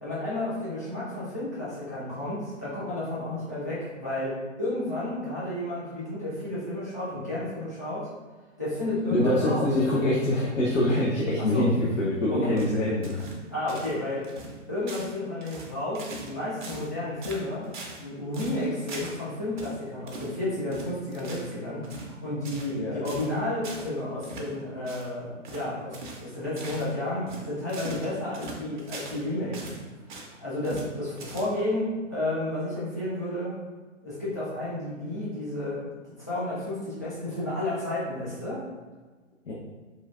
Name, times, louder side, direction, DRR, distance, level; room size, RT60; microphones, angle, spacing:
voice 1, 0.0-8.1 8.6-9.7 11.4-11.7 12.3-12.6 13.5-14.3 14.7-17.7 18.0-29.8 30.4-33.5 34.0-35.9 36.3-38.6, left 1 dB, 15° left, -11 dB, 0.3 m, -31 dB
voice 2, 9.1-13.2 22.8-23.0 39.5-39.6, left 1 dB, 75° left, -5 dB, 0.7 m, -24 dB
footsteps-wet-dirt-and-leaves, 12.6-13.4 13.7-14.0 14.2-14.6 14.9-15.2 15.4-16.3 16.6-16.9 17.2-18.0 18.3-19.2 19.6-19.7 20.1-20.3 20.7-21.5 21.8-22.1 22.4-22.8 23.0-23.3 23.6-23.9 24.2-24.5 24.8-25.1 25.4-25.7 25.9-26.3 26.6-26.9 27.3-29.2 29.5-30.3 30.6-30.9 31.2-31.7, right 3 dB, 40° right, 0.5 m, -41 dB
3.1 x 2.3 x 2.3 m, 1.3 s
figure-of-eight pair, 130°, 38 cm